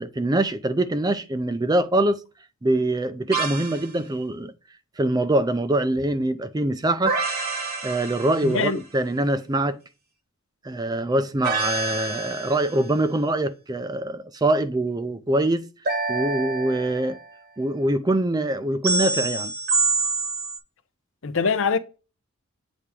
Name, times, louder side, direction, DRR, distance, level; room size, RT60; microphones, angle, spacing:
voice 1, 0.0-2.2 2.6-4.5 5.0-7.2 7.8-9.8 10.6-15.6 16.1-17.2 17.6-19.5, right 1 dB, 20° right, 0.5 m, -24 dB
sound 1, 3.3-3.9 7.1-8.8 11.4-12.9 15.8-17.3 18.8-20.6, right 3 dB, 45° right, 1.1 m, -27 dB
voice 2, 8.4-8.8 21.2-21.8, left 5 dB, 60° left, 0.7 m, -23 dB
8.3 x 3.5 x 3.3 m
head